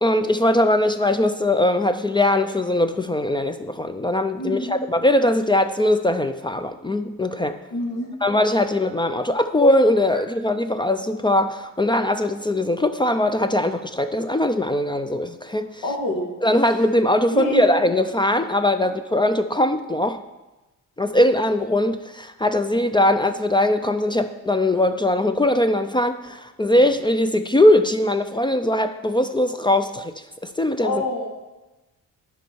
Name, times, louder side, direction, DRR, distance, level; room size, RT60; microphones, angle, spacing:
voice 1, 0.0-7.6 8.2-15.8 16.4-20.2 21.0-30.1 30.4-31.0, left 1 dB, 15° left, 9 dB, 0.3 m, -20 dB
voice 2, 4.4-4.8 7.7-8.1 15.8-16.3 17.3-17.6 30.8-31.3, left 1 dB, 80° left, 0 dB, 1.9 m, -26 dB
10.5 x 5.4 x 4.5 m, 1.1 s
cardioid pair, 110°, 33 cm